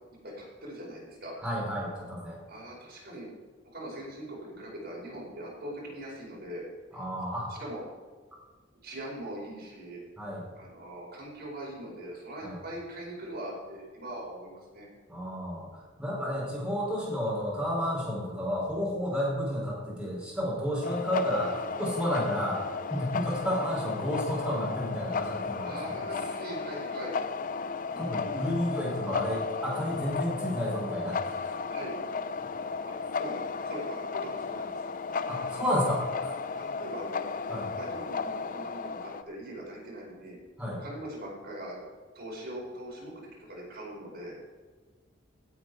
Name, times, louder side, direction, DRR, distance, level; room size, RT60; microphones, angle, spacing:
voice 1, 0.2-1.4 2.5-3.3 3.7-6.6 7.6-7.8 8.8-10.0 10.5-14.9 25.6-27.1 27.9-28.5 31.7-32.0 32.8-34.8 36.6-37.5 37.8-40.4 40.8-41.8 42.1-44.4, right 1 dB, 55° right, -3 dB, 5.0 m, -41 dB
voice 2, 1.4-2.4 6.9-7.5 10.2-10.5 12.4-12.6 15.1-22.6 22.9-25.9 27.9-31.6 32.4-32.5 35.3-36.3 37.5-37.7 40.6-40.8, equal, 5° right, -5 dB, 4.6 m, -31 dB
sound 1, 20.8-39.2, left 5 dB, 45° left, 0.5 m, -34 dB
17.0 x 8.7 x 4.8 m, 1.4 s
head